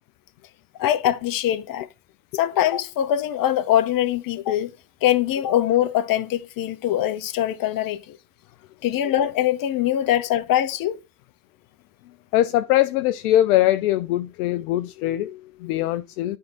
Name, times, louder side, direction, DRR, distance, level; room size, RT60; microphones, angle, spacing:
voice 1, 0.8-1.9 2.3-4.7 5.0-8.2 8.8-11.0, left 11 dB, 45° left, 1.0 m, -22 dB
voice 2, 12.3-16.4, left 14 dB, 70° left, 0.6 m, -22 dB
9.7 x 3.7 x 4.3 m
hypercardioid pair, 65°, 45 cm